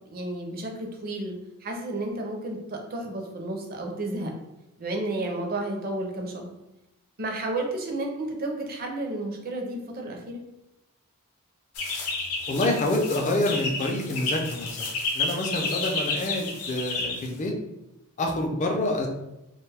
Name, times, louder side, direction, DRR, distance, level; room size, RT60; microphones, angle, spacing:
voice 1, 0.1-4.3 4.8-6.5 7.2-10.4, right 2 dB, 40° right, 2 dB, 0.5 m, -32 dB
sound 1, 11.7-17.5, left 3 dB, 80° left, 0.6 m, -31 dB
voice 2, 12.5-14.9 15.1-17.5 18.2-19.1, left 1 dB, 35° left, 2 dB, 0.4 m, -27 dB
2.5 x 2.2 x 3.3 m, 0.92 s
head